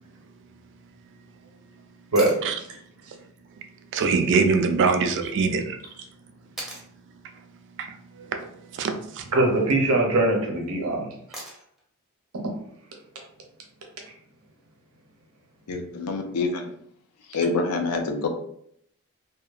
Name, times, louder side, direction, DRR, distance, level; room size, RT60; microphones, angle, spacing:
sound 1, 2.2-2.5 4.7-4.8 6.6-6.9 8.9-9.3 11.3-11.8 13.9-14.0, right 1 dB, ahead, 0.5 m, -39 dB
voice 1, 3.9-5.8 7.8-9.3, right 4 dB, 55° right, 6 dB, 0.3 m, -24 dB
voice 2, 9.3-11.1, right 2 dB, 70° right, 1 dB, 0.7 m, -21 dB
voice 3, 15.7-16.7 17.3-18.3, left 3 dB, 85° left, 5 dB, 0.4 m, -26 dB
2.8 x 2.2 x 2.3 m, 0.67 s
head